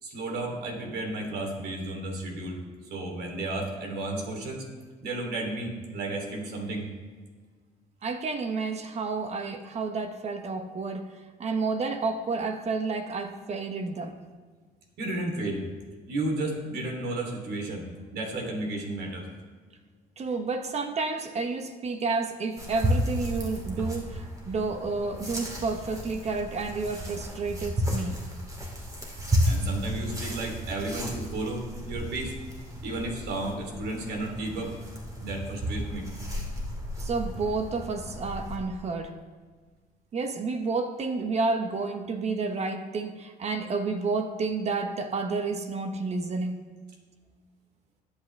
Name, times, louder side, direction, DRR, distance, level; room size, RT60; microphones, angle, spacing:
voice 1, 0.0-2.6 2.9-4.7 5.0-6.9 15.0-15.7 16.1-19.3 29.4-32.3 32.8-34.8 35.2-36.1, right 2 dB, 70° right, 2 dB, 3.1 m, -33 dB
voice 2, 8.0-14.2 20.2-28.2 37.0-39.2 40.1-46.7, right 4 dB, 40° right, 7 dB, 1.1 m, -30 dB
sound 1, 22.6-38.6, equal, 20° right, 2.8 m, -33 dB
21.5 x 8.4 x 3.3 m, 1.5 s
cardioid pair, 110°, 17 cm